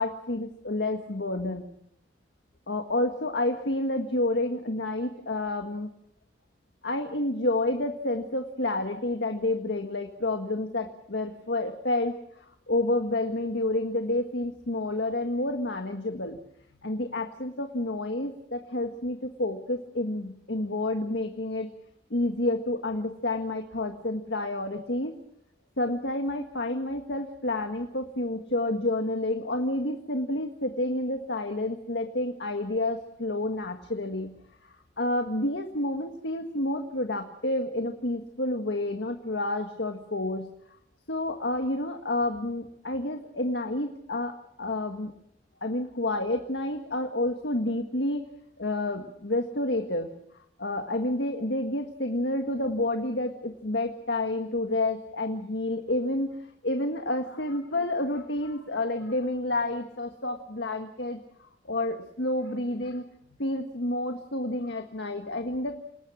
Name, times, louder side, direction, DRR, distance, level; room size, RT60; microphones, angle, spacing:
voice 1, 0.0-1.6 2.7-5.9 6.8-12.1 12.7-16.4 16.8-21.7 22.1-25.2 25.8-34.3 35.0-40.5 41.1-45.1 45.6-48.2 48.6-50.1 50.6-56.3 56.6-63.0 63.4-65.8, left 2 dB, 70° left, 5 dB, 1.7 m, -29 dB
29.0 x 19.5 x 6.3 m, 0.72 s
head